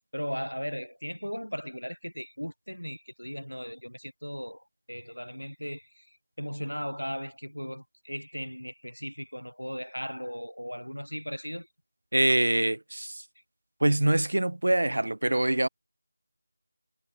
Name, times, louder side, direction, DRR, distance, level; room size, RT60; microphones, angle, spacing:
voice 1, 0.1-11.7, equal, 90° left, 7.4 m, -37 dB
voice 2, 12.1-13.2 13.8-15.7, right 1 dB, 60° right, 2.7 m, -24 dB
figure-of-eight pair, 165°, 0 cm